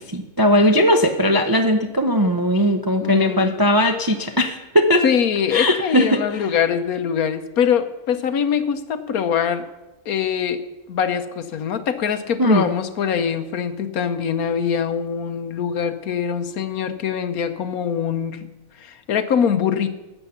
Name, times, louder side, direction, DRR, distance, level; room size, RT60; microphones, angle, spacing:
voice 1, 0.0-5.0 5.5-6.2 12.4-12.7, equal, 25° right, 5 dB, 0.4 m, -18 dB
voice 2, 3.0-3.6 5.0-9.6 10.1-10.6 10.9-18.5 18.8-19.9, left 7 dB, 70° left, 10 dB, 1.3 m, -23 dB
12.5 x 8.2 x 7.0 m, 1.0 s
omnidirectional pair, 1.6 m